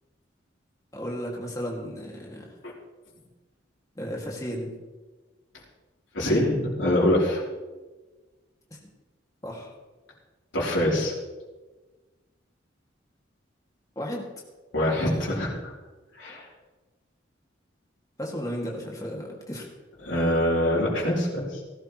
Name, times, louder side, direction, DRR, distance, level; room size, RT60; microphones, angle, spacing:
voice 1, 0.9-2.5 4.0-4.7 8.7-8.8 9.4-9.7 14.0-14.3 18.2-19.7, equal, 20° left, -1 dB, 2.2 m, -34 dB
voice 2, 6.1-7.4 10.5-11.1 14.7-15.7 16.1-16.5 20.0-21.6, left 1 dB, 80° left, -6 dB, 3.5 m, -24 dB
18.0 x 12.5 x 3.2 m, 1.3 s
head